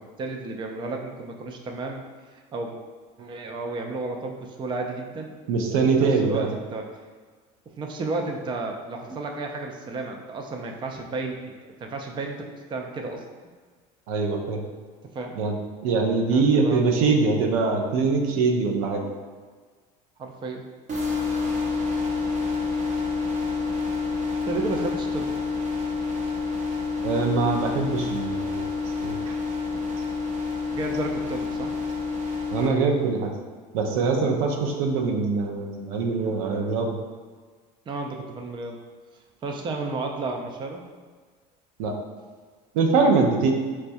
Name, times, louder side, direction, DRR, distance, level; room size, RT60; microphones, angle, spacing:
voice 1, 0.0-2.0 2.3-2.8 3.2-5.3 5.6-7.0 7.8-11.5 11.8-13.2 15.1-15.4 16.3-16.8 20.2-20.7 24.4-25.3 29.7-29.9 30.7-31.7 37.9-38.8 39.4-40.8, right 3 dB, 25° right, 2 dB, 0.4 m, -32 dB
voice 2, 5.5-6.5 14.1-14.6 15.4-15.6 15.8-19.0 27.0-28.6 29.0-29.3 32.5-33.3 33.7-37.0 41.8-41.9 42.7-43.5, right 4 dB, 80° right, 2 dB, 0.5 m, -23 dB
sound 1, 20.9-32.7, left 4 dB, 45° right, 0.8 m, -28 dB
4.4 x 2.2 x 2.6 m, 1.5 s
supercardioid pair, 95°, 18 cm